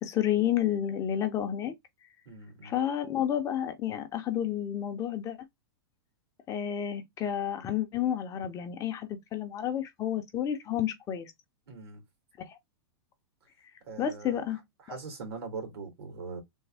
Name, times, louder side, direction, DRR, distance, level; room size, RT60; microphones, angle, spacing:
voice 1, 0.0-1.7 2.6-5.4 6.5-11.3 12.4-12.5 14.0-14.6 14.9-15.0, left 10 dB, 25° left, 0.6 m, -30 dB
voice 2, 2.3-2.8 11.7-12.0 13.8-14.4 14.8-16.4, right 4 dB, 80° right, 2.0 m, -41 dB
3.4 x 2.0 x 3.3 m
hypercardioid pair, 135°, 13 cm